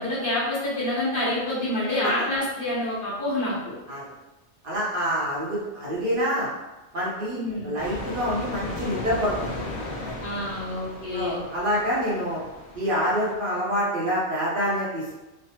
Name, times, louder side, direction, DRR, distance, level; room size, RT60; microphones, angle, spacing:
voice 1, 0.0-3.7 7.3-7.7 10.2-11.4, left 1 dB, 50° left, -8 dB, 1.2 m, -27 dB
voice 2, 4.6-6.5 6.9-9.5 10.0-10.1 11.1-12.4 12.7-15.1, equal, 55° right, -7 dB, 0.9 m, -26 dB
sound 1, 7.8-13.4, left 2 dB, 15° left, 0.8 m, -36 dB
3.2 x 2.1 x 2.8 m, 1.1 s
omnidirectional pair, 1.2 m